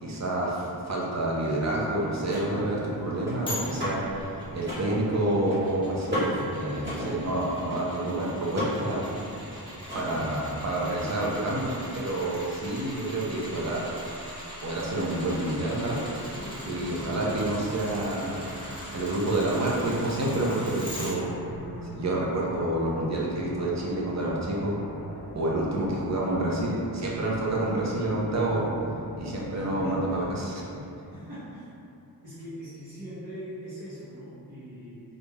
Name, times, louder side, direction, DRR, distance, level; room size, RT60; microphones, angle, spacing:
voice 1, 0.0-4.0 4.5-9.1 9.9-13.8 14.6-16.0 16.6-18.4 18.9-21.3 22.0-24.8 25.3-28.6 29.2-30.6, right 1 dB, 45° right, -4 dB, 0.6 m, -28 dB
Car / Mechanisms, 1.6-10.5, equal, 30° right, 1.4 m, -36 dB
sound 1, 3.5-21.1 21.6-21.7, equal, 15° left, 0.8 m, -42 dB
sound 2, 16.3-30.3, equal, 40° left, 0.5 m, -40 dB
voice 2, 29.5-30.2 31.1-31.7 32.2-35.0, equal, 65° right, -13 dB, 1.0 m, -41 dB
3.1 x 2.5 x 2.2 m, 2.7 s
cardioid pair, 70°, 38 cm